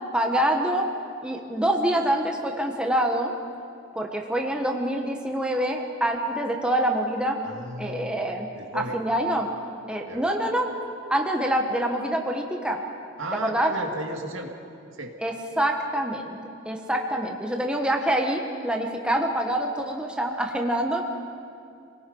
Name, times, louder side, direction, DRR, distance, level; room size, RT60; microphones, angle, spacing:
voice 1, 0.1-0.9 1.2-3.3 3.9-7.4 7.8-8.5 8.7-9.5 9.9-10.7 11.1-12.8 13.4-13.7 15.2-16.4 16.6-21.0, right 1 dB, 5° right, 1 dB, 1.4 m, -25 dB
voice 2, 7.4-9.0 10.0-10.3 13.2-14.5 14.9-15.1, right 2 dB, 80° right, 2 dB, 2.2 m, -35 dB
28.0 x 19.5 x 5.5 m, 2.5 s
head